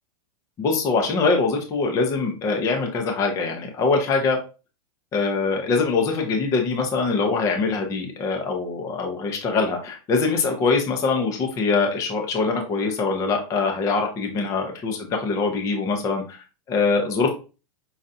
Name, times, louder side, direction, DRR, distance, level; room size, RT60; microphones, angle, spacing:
voice 1, 0.6-4.4 5.1-17.3, left 4 dB, 15° left, 3 dB, 0.5 m, -23 dB
5.4 x 2.3 x 2.5 m, 0.32 s
supercardioid pair, 165°, 20 cm